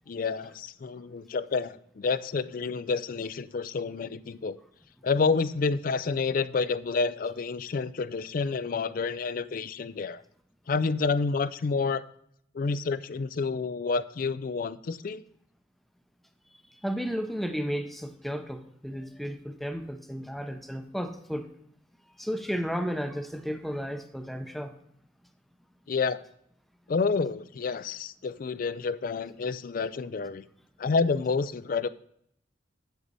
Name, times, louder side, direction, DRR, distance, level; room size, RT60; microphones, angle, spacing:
voice 1, 0.1-4.6 5.0-10.2 10.7-12.0 12.5-15.2 25.9-26.2 26.9-30.4 30.8-31.9, left 4 dB, 50° left, 16 dB, 0.4 m, -29 dB
voice 2, 16.5-21.5 22.2-24.7, equal, ahead, 7 dB, 0.6 m, -33 dB
8.2 x 7.4 x 4.0 m, 0.71 s
head